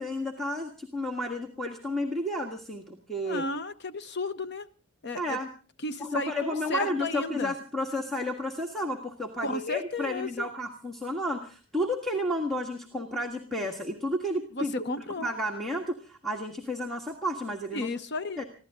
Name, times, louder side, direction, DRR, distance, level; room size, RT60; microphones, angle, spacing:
voice 1, 0.0-3.4 5.1-5.5 6.0-14.7 15.2-17.9 18.4-18.5, left 1 dB, ahead, 0 dB, 1.6 m, -32 dB
voice 2, 3.2-4.7 5.0-5.4 5.8-7.5 9.4-10.5 14.5-15.3 17.7-18.4, left 2 dB, 50° left, 13 dB, 0.8 m, -33 dB
21.5 x 15.5 x 3.7 m, 0.37 s
head